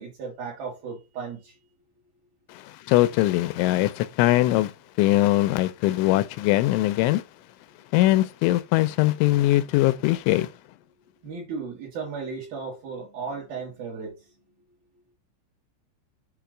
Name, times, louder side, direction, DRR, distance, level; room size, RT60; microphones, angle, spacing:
voice 1, 0.0-1.5 11.2-14.1, right 5 dB, 60° right, 2.8 m, -35 dB
voice 2, 2.5-4.7 5.0-7.2 7.9-10.5, left 16 dB, 85° left, 2.9 m, -21 dB
7.9 x 2.7 x 4.9 m
omnidirectional pair, 5.5 m